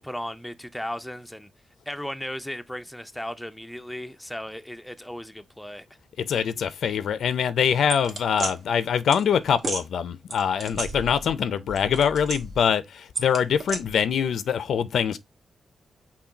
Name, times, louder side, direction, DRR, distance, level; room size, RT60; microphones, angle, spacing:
voice 1, 0.0-1.5 1.9-5.9, equal, 5° left, 0.4 m, -36 dB
voice 2, 6.2-15.2, left 7 dB, 80° left, 0.5 m, -24 dB
sound 1, 7.9-8.5 9.1-9.2 9.6-9.8 10.3-11.4 11.7-12.7 13.2-13.8, right 3 dB, 50° right, 1.3 m, -33 dB
5.8 x 2.3 x 3.9 m
wide cardioid pair, 115°, 0 cm